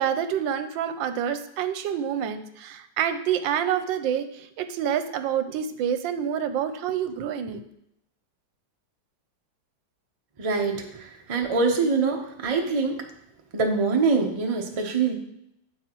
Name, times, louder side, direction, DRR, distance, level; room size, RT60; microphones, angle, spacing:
voice 1, 0.0-7.6, right 9 dB, 80° right, 10 dB, 1.4 m, -27 dB
voice 2, 10.4-13.1 13.5-15.1, right 4 dB, 30° right, 2 dB, 0.6 m, -24 dB
9.7 x 7.2 x 3.0 m, 0.78 s
omnidirectional pair, 2.1 m